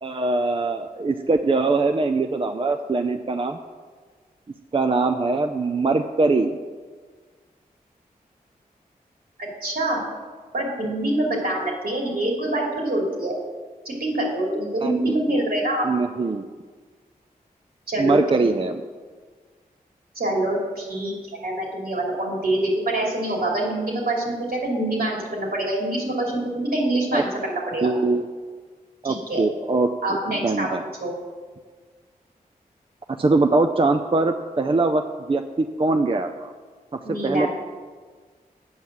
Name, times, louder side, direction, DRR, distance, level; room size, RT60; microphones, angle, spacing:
voice 1, 0.0-3.6 4.7-6.6 14.8-15.2 15.8-16.5 18.0-18.8 27.1-27.2 27.8-28.3 29.0-30.8 33.1-35.0 35.3-36.5 37.2-37.5, right 3 dB, 35° right, 7 dB, 0.5 m, -22 dB
voice 2, 9.4-10.0 10.5-13.4 13.8-15.9 17.9-18.4 20.1-21.1 21.4-27.9 29.0-29.4 30.0-30.7 31.0-31.1 37.0-37.5, right 1 dB, 70° right, -2 dB, 2.8 m, -25 dB
7.9 x 5.5 x 7.4 m, 1.5 s
cardioid pair, 40°, 16 cm